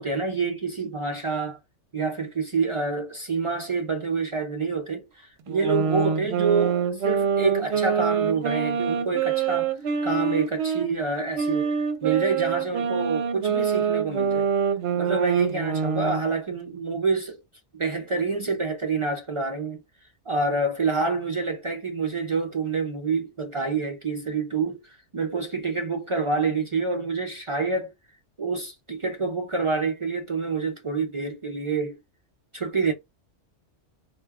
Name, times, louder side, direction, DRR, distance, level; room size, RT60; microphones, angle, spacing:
voice 1, 0.0-1.6 1.9-9.7 10.0-11.7 12.0-14.5 15.0-17.4 17.7-19.8 20.3-27.9 28.4-32.0 32.5-32.9, right 4 dB, 50° right, 0.3 m, -27 dB
sound 1, 5.5-10.9 11.3-16.2, right 6 dB, 70° right, 0.8 m, -25 dB
2.3 x 2.2 x 3.3 m
omnidirectional pair, 1.2 m